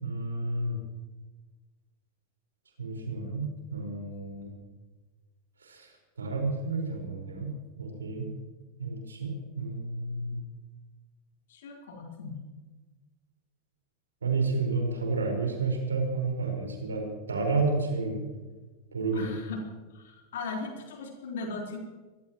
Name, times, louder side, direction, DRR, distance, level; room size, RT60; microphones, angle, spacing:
voice 1, 0.0-0.8 2.8-4.5 5.7-5.9 6.2-7.5 7.8-8.3 8.8-10.4 14.2-18.2 18.9-19.3, right 3 dB, 80° right, 2 dB, 5.1 m, -30 dB
voice 2, 11.5-12.5 19.1-19.6 19.9-21.8, left 3 dB, 65° left, -1 dB, 4.3 m, -38 dB
25.5 x 18.0 x 3.1 m, 1.3 s
figure-of-eight pair, 90°, 0 cm